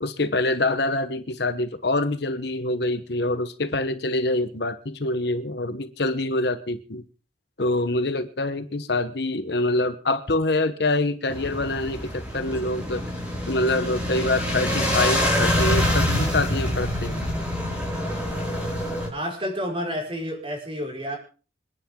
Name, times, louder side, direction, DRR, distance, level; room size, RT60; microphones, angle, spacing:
voice 1, 0.0-7.0 7.6-13.0 13.5-17.3, left 2 dB, 55° left, 10 dB, 1.2 m, -25 dB
sound 1, 11.3-19.1, left 1 dB, 5° right, 5.5 m, -25 dB
voice 2, 19.1-21.2, equal, 25° right, 0 dB, 5.8 m, -30 dB
27.5 x 10.5 x 3.9 m, 0.38 s
head